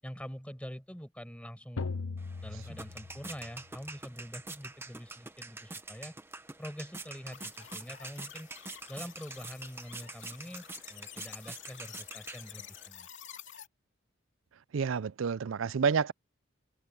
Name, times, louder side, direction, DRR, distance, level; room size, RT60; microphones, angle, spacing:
voice 1, 0.0-1.9 2.4-6.1 6.6-8.5 8.9-13.1, equal, 5° left, 6.5 m, -45 dB
sound 1, 1.8-3.7, left 4 dB, 85° left, 0.9 m, -39 dB
sound 2, 2.2-12.9, right 3 dB, 10° right, 1.0 m, -46 dB
sound 3, 7.3-13.7, left 10 dB, 60° left, 2.6 m, -49 dB
voice 2, 14.7-16.1, right 6 dB, 70° right, 0.4 m, -29 dB
head